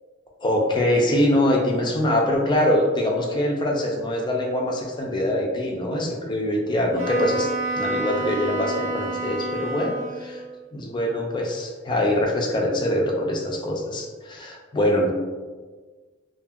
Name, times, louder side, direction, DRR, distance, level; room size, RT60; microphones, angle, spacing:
voice 1, 0.4-7.5 7.8-10.4 10.7-15.1, left 1 dB, 25° left, 0 dB, 0.4 m, -23 dB
Wind instrument woodwind instrument, 7.0-10.5, right 2 dB, 75° right, 0.5 m, -29 dB
2.6 x 2.5 x 2.3 m, 1.4 s
head